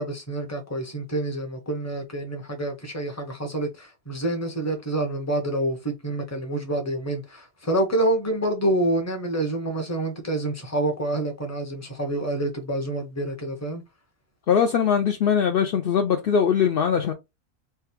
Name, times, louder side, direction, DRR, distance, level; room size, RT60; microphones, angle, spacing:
voice 1, 0.0-13.8, right 1 dB, 15° left, 0.8 m, -27 dB
voice 2, 14.5-17.1, left 7 dB, 70° left, 0.5 m, -21 dB
3.5 x 2.3 x 4.3 m
omnidirectional pair, 1.5 m